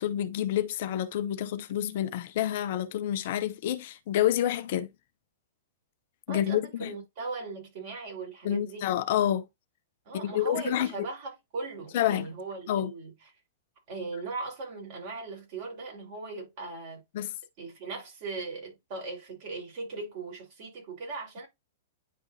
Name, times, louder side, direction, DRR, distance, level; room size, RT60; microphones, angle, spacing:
voice 1, 0.0-4.9 6.3-6.9 8.4-9.5 10.2-10.9 11.9-12.3 12.7-12.9 17.1-17.3, left 11 dB, 55° left, 0.6 m, -28 dB
voice 2, 6.3-8.9 10.1-13.1 13.9-17.0 17.6-21.5, right 3 dB, 50° right, 4.0 m, -38 dB
10.0 x 3.6 x 2.7 m
figure-of-eight pair, 105°, 0 cm